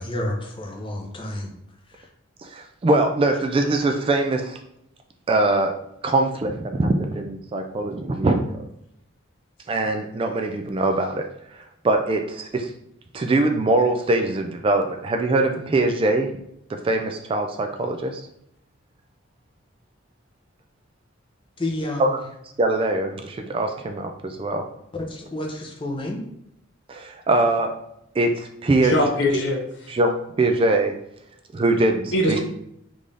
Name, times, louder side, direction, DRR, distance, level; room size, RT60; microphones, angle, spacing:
voice 1, 0.0-1.5 1.9-2.1 21.6-22.2 24.9-26.2, left 1 dB, 25° left, 0 dB, 0.7 m, -30 dB
voice 2, 2.4-4.6 5.3-5.7 6.0-8.6 9.7-11.2 11.6-12.7 13.1-16.3 16.7-18.2 22.0-22.2 22.6-24.6 26.9-27.7 28.2-28.9 29.9-30.9 31.5-32.4, right 2 dB, 25° right, 5 dB, 0.3 m, -22 dB
voice 3, 28.8-29.9 32.1-32.4, left 1 dB, 60° left, 2 dB, 0.7 m, -22 dB
3.7 x 2.6 x 3.3 m, 0.77 s
head